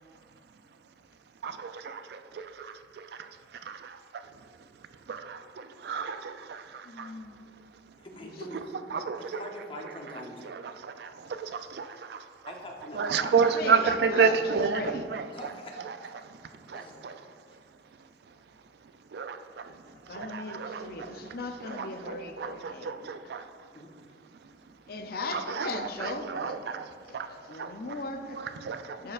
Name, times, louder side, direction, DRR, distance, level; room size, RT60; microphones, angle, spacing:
voice 1, 1.4-4.3 5.1-7.1 8.7-9.4 10.4-12.3 12.9-15.5 15.8-17.2 19.1-21.2 21.6-23.5 25.3-26.9 27.1-27.7 28.3-29.0, right 5 dB, 65° right, 10 dB, 0.4 m, -31 dB
voice 2, 6.8-7.4 8.1-8.4 13.5-15.1 19.9-23.1 24.9-26.6 27.0-28.4 29.0-29.1, left 3 dB, 60° left, 6 dB, 0.5 m, -38 dB
voice 3, 8.0-8.6 9.2-10.5 12.5-13.3 15.3-15.7 16.0-16.1 16.7-17.0 23.7-23.9, left 1 dB, 30° left, 1 dB, 0.9 m, -43 dB
11.5 x 4.3 x 2.4 m, 2.2 s
head